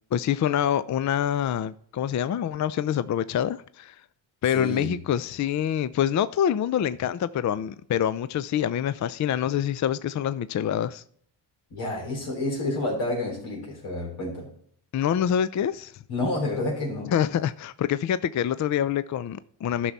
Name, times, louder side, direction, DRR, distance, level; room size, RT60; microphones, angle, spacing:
voice 1, 0.1-4.0 4.4-11.0 14.9-15.9 17.1-19.9, left 9 dB, 40° left, 0.4 m, -26 dB
voice 2, 4.5-4.9 11.7-14.5 16.1-17.1, left 2 dB, 85° left, 3.4 m, -29 dB
11.5 x 6.1 x 4.1 m
cardioid pair, 70°, 49 cm